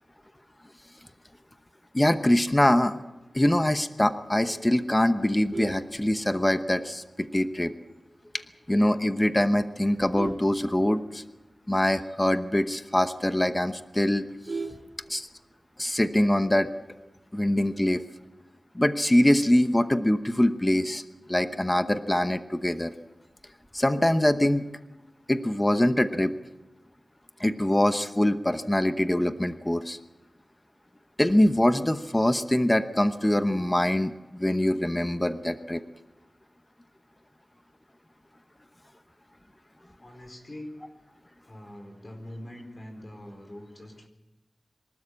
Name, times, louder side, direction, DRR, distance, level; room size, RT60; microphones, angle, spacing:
voice 1, 1.9-3.0 3.3-7.0 7.3-7.7 8.7-11.2 11.7-14.2 15.1-15.3 15.8-16.7 17.3-18.0 18.7-21.0 21.3-22.9 23.7-24.6 25.3-26.3 27.4-30.0 31.2-35.8, left 1 dB, 15° left, 10 dB, 0.9 m, -23 dB
Vehicle horn car horn honking, 5.2-6.7 7.2-7.4 7.7-7.8 8.3-8.4 8.6-9.0 9.6-11.4 11.8-11.9 12.1-12.2 12.7-12.8 13.1-13.2 13.5-15.5 16.7-17.1, right 3 dB, 50° right, 2.6 m, -38 dB
voice 2, 40.0-40.7 41.4-44.1, left 1 dB, 35° left, 3 dB, 4.5 m, -43 dB
24.0 x 13.0 x 8.5 m, 1.1 s
wide cardioid pair, 85°, 0 cm